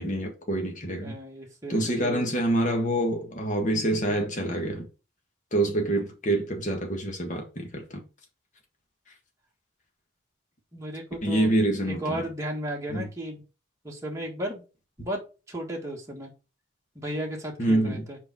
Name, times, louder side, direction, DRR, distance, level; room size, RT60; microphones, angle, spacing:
voice 1, 0.0-1.1 1.7-4.9 5.5-8.0 11.2-12.3 12.9-13.1 17.6-18.1, right 1 dB, 40° left, 1.7 m, -26 dB
voice 2, 1.0-2.2 3.7-3.8 10.7-11.5 11.8-13.4 13.8-14.6 15.0-15.2 15.5-16.3 16.9-18.2, right 1 dB, 15° right, 1.5 m, -34 dB
5.0 x 4.7 x 5.7 m
head